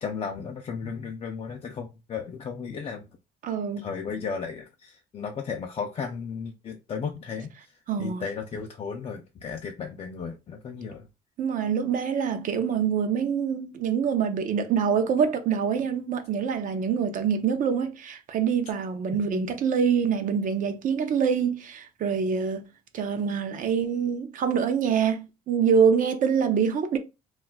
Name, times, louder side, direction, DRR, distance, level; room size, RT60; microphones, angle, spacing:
voice 1, 0.0-3.0 3.8-7.7 8.0-11.1 19.1-19.5, left 5 dB, 35° left, 0.4 m, -35 dB
voice 2, 3.4-3.9 7.9-8.3 11.4-22.7 22.9-27.0, right 7 dB, 50° right, 0.5 m, -25 dB
2.3 x 2.2 x 3.9 m
cardioid pair, 110°, 17 cm